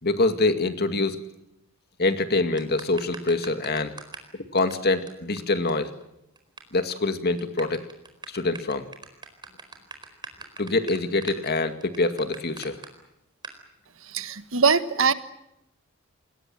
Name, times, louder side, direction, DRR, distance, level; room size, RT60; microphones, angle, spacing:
voice 1, 0.0-1.2 2.0-4.0 4.5-5.9 6.7-7.9 8.3-8.8 10.6-12.8, left 2 dB, 50° left, 9 dB, 2.2 m, -25 dB
sound 1, 2.6-4.3 4.6-4.7 5.1-5.2 5.4-5.5 5.7-5.8 6.0-6.6 6.9-7.1 7.4-12.9 13.4-13.6, right 4 dB, 20° right, 4.5 m, -41 dB
voice 2, 14.1-15.1, right 5 dB, 65° right, 12 dB, 1.5 m, -22 dB
28.5 x 21.5 x 7.7 m, 0.85 s
head